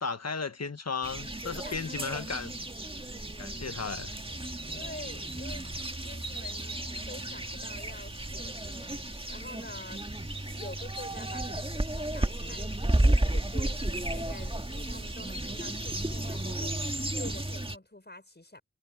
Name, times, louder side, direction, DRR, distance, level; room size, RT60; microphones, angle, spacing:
voice 1, 0.0-2.7 3.4-4.1, left 5 dB, 50° left, 1.4 m, -35 dB
sound 1, 1.0-17.8, right 1 dB, 15° right, 1.7 m, -33 dB
sound 2, 1.0-17.2, right 4 dB, 90° right, 3.9 m, -54 dB
voice 2, 1.6-2.3 3.8-3.9 4.3-4.4 4.7-5.7 6.0-6.8 7.1-10.1 10.6-18.6, left 2 dB, 30° left, 5.9 m, -47 dB
cardioid pair, 40°, 32 cm